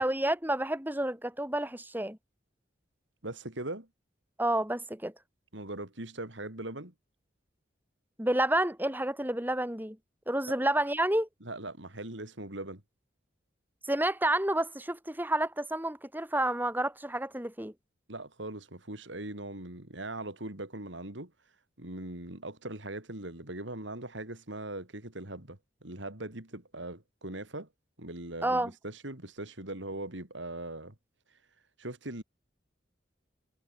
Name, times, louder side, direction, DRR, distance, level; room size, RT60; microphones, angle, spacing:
voice 1, 0.0-2.2 4.4-5.1 8.2-10.0 10.3-11.3 13.9-17.7 28.4-28.7, right 1 dB, 10° right, 6.4 m, -29 dB
voice 2, 3.2-3.9 5.5-6.9 10.5-10.6 11.4-12.8 18.1-21.3 21.8-27.7 28.0-30.9 31.8-32.2, right 2 dB, 75° right, 4.5 m, -40 dB
head